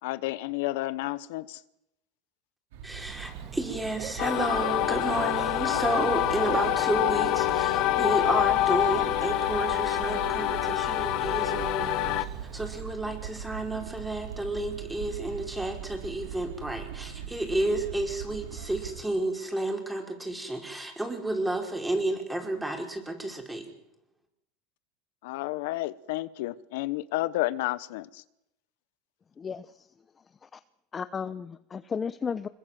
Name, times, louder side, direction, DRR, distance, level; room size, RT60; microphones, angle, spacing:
voice 1, 0.0-1.6 25.2-28.2, left 18 dB, 75° left, 17 dB, 1.0 m, -31 dB
sound 1, 2.7-19.0, right 9 dB, 85° right, 3.2 m, -41 dB
voice 2, 2.8-12.2 12.5-23.7, right 1 dB, 5° right, 3 dB, 5.4 m, -31 dB
Bird / Cricket, 3.1-12.8, right 9 dB, 45° right, 2.1 m, -45 dB
sound 2, 4.2-12.2, left 15 dB, 55° left, 1.5 m, -26 dB
voice 3, 29.4-29.9 30.4-30.6 30.9-32.5, left 6 dB, 20° left, 13 dB, 0.8 m, -34 dB
26.0 x 22.0 x 7.7 m, 0.84 s
supercardioid pair, 130°, 0 cm